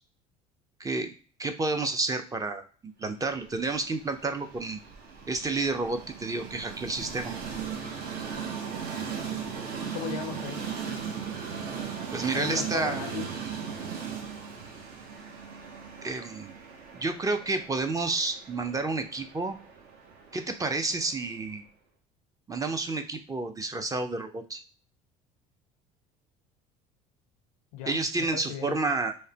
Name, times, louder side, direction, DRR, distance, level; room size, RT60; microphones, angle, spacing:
voice 1, 0.8-1.1 1.4-4.8 5.3-7.3 12.1-13.0 16.0-16.5 16.9-19.6 20.3-21.6 22.5-24.6 27.9-29.2, right 3 dB, 20° right, 0.5 m, -30 dB
Train, 3.4-21.4, right 6 dB, 60° right, 0.8 m, -38 dB
voice 2, 9.8-10.7 12.3-13.3 27.7-28.8, left 10 dB, 85° left, 0.5 m, -37 dB
3.1 x 2.1 x 2.8 m
hypercardioid pair, 75°, 18 cm